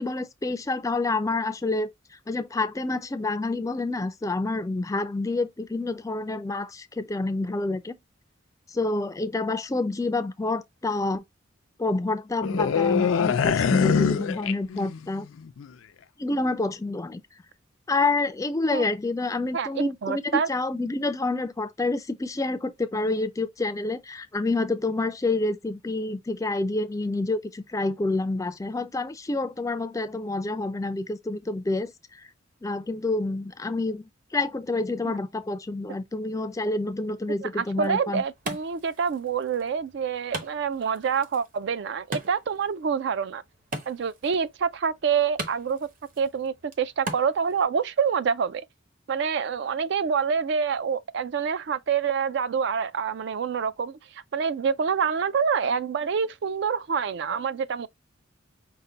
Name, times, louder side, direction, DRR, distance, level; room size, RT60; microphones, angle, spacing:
voice 1, 0.0-1.9 2.3-8.0 8.7-11.2 11.8-15.3 16.2-17.2 17.9-32.3 32.6-38.2, left 2 dB, 15° left, 0.3 m, -28 dB
sound 1, 12.4-15.1 15.4-15.7, left 7 dB, 85° left, 0.4 m, -24 dB
voice 2, 19.5-20.5 35.0-35.2 37.4-43.4 43.9-45.9 46.2-48.6 49.1-54.0 54.3-57.9, right 6 dB, 60° right, 0.4 m, -26 dB
Wood, 37.6-47.6, right 2 dB, 45° right, 0.9 m, -41 dB
5.4 x 2.2 x 3.8 m
head